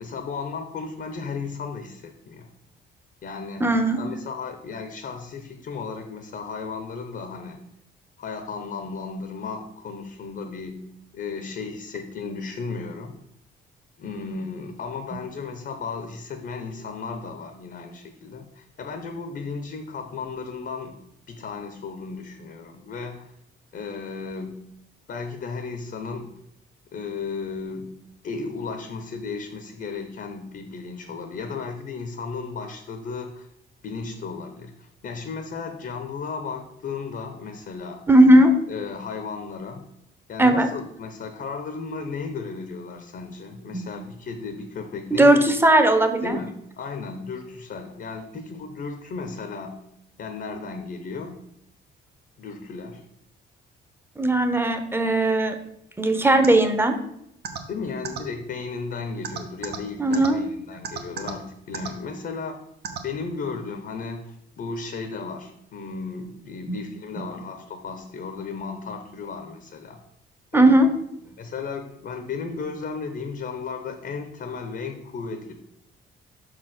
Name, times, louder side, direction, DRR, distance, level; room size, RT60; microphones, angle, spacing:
voice 1, 0.0-2.5 3.2-3.7 4.0-7.6 8.2-10.9 11.1-13.2 14.0-23.3 23.7-24.7 25.1-26.3 26.9-27.9 28.2-33.5 33.8-38.0 38.7-39.8 40.3-45.4 46.2-46.5 46.8-49.8 50.2-51.4 52.4-53.0 57.7-62.6 63.0-70.0 70.5-70.8 71.4-75.5, left 4 dB, 55° left, 5 dB, 1.0 m, -34 dB
voice 2, 3.6-4.1 15.1-15.2 38.1-38.6 40.4-40.7 43.7-43.8 45.1-46.4 54.2-55.6 56.0-57.0 60.0-60.5 66.7-66.8 70.5-70.9, right 1 dB, 10° right, 8 dB, 0.9 m, -18 dB
sound 1, 56.4-56.5 57.4-57.6 58.0-58.2 59.2-59.8 60.1-60.3 60.8-61.3 61.7-61.9 62.8-63.0, right 7 dB, 55° right, 1.1 m, -31 dB
5.8 x 4.9 x 5.9 m, 0.76 s
cardioid pair, 90°, 20 cm